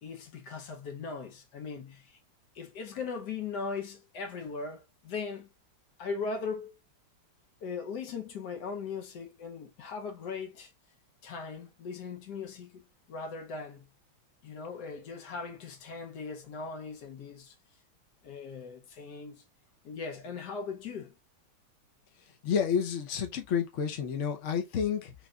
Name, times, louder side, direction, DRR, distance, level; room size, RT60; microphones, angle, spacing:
voice 1, 0.0-2.2 2.5-5.5 6.0-6.8 7.6-10.7 11.2-13.9 14.4-17.5 18.2-19.4 19.8-21.1, left 5 dB, 60° left, 1.2 m, -39 dB
voice 2, 22.4-25.1, left 7 dB, 80° left, 0.6 m, -30 dB
3.4 x 3.1 x 2.4 m
omnidirectional pair, 2.3 m